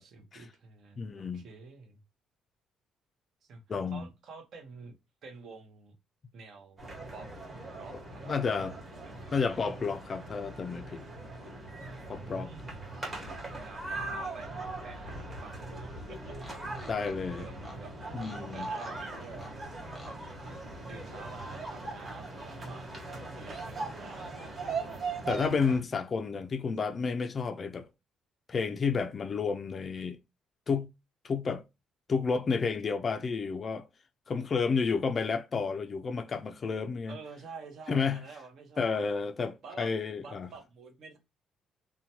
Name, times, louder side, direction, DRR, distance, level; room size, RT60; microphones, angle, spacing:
voice 1, 0.0-2.0 3.4-3.6 3.9-5.0 5.2-5.9 6.3-6.8 7.1-7.3 7.7-8.8 9.0-9.4 12.1-17.1 17.4-17.9 18.5-19.5 20.1-20.2 20.9-24.6 24.9-25.2 37.1-39.1 39.6-39.9 40.2-41.2, right 4 dB, 60° right, 0.8 m, -49 dB
voice 2, 1.0-1.4 3.7-4.0 8.3-8.7 9.3-11.0 12.1-12.5 16.9-17.5 18.1-18.7 25.3-27.9 28.5-30.2 30.7-30.9 31.2-31.6 32.1-33.8 34.3-37.2 37.9-38.2 38.8-40.5, left 5 dB, 35° left, 0.3 m, -31 dB
sound 1, 6.8-25.8, right 3 dB, 25° right, 1.1 m, -40 dB
sound 2, 14.0-22.2, equal, ahead, 0.8 m, -54 dB
2.8 x 2.1 x 2.8 m
cardioid pair, 120°, 0 cm